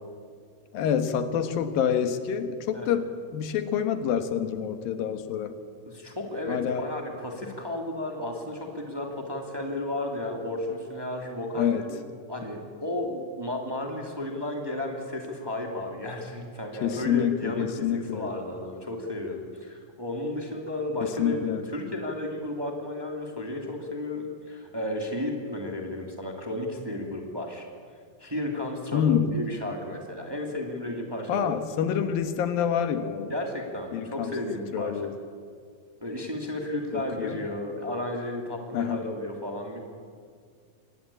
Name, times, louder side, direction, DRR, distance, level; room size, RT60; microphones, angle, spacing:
voice 1, 0.7-3.1 3.3-5.5 6.5-6.9 11.6-11.8 16.8-18.3 21.2-21.6 28.9-29.4 31.3-33.3 33.9-34.3 34.7-35.1 36.9-37.4 38.7-39.1, left 8 dB, 85° left, 9 dB, 3.2 m, -27 dB
voice 2, 5.9-12.0 12.3-21.4 21.7-27.7 28.2-31.5 31.9-32.0 33.3-35.0 36.0-39.8, left 1 dB, 10° right, 2 dB, 2.3 m, -33 dB
25.5 x 19.0 x 8.6 m, 2.1 s
omnidirectional pair, 4.0 m